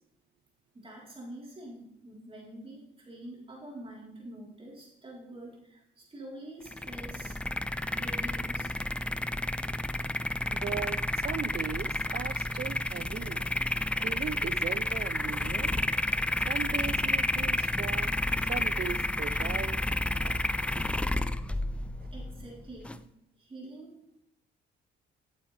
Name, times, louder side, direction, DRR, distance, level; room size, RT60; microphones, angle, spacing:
voice 1, 0.7-7.5 7.9-8.7 22.1-23.0 23.4-24.0, right 1 dB, 25° right, -3 dB, 3.7 m, -46 dB
sound 1, 6.7-23.0, left 1 dB, 5° left, 0.3 m, -31 dB
voice 2, 10.5-13.5 14.0-15.7 16.1-18.1 18.5-19.8 20.2-20.4 20.8-20.9 21.5-21.7 22.0-22.1, right 8 dB, 50° right, 15 dB, 0.6 m, -39 dB
12.0 x 8.3 x 3.3 m, 0.82 s
cardioid pair, 90°, 20 cm